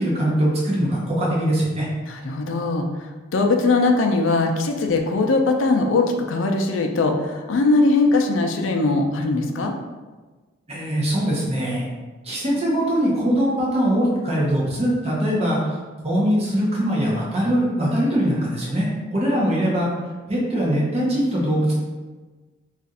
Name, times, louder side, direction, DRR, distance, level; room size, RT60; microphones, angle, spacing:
voice 1, 0.0-1.9 10.7-11.9 12.2-15.8 16.0-19.9 20.3-21.7, equal, 30° right, -5 dB, 0.7 m, -22 dB
voice 2, 2.1-2.9 3.3-9.8, left 3 dB, 75° left, 4 dB, 0.4 m, -20 dB
2.4 x 2.4 x 4.1 m, 1.3 s
head